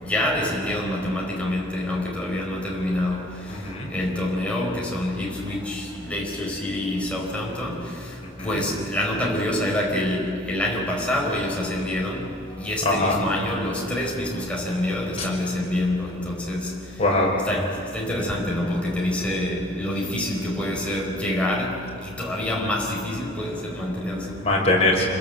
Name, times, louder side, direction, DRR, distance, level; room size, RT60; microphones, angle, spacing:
voice 1, 0.0-3.3 3.9-7.8 8.4-12.2 12.6-16.7 17.5-17.7 17.9-21.7 22.0-24.3, left 1 dB, 5° left, -3 dB, 4.6 m, -26 dB
voice 2, 3.5-3.9 8.2-8.5 12.8-13.2 15.2-15.3 17.0-17.3 24.4-25.1, left 2 dB, 30° left, -2 dB, 5.8 m, -22 dB
28.5 x 21.0 x 8.0 m, 2.5 s
head